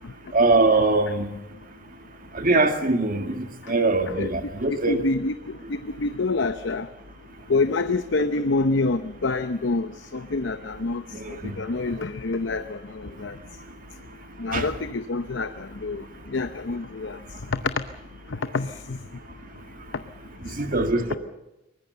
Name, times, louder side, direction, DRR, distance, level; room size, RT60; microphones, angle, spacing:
voice 1, 0.3-1.3 2.3-5.0 11.1-11.6 14.5-14.7 20.4-21.2, right 3 dB, 45° right, 7 dB, 1.8 m, -22 dB
voice 2, 4.9-5.6 6.0-6.9 7.5-11.0 11.6-12.8 13.2-13.3 14.4-16.0 16.3-17.2 18.5-19.0, left 3 dB, 65° left, 10 dB, 0.8 m, -26 dB
24.0 x 20.0 x 6.9 m, 0.93 s
head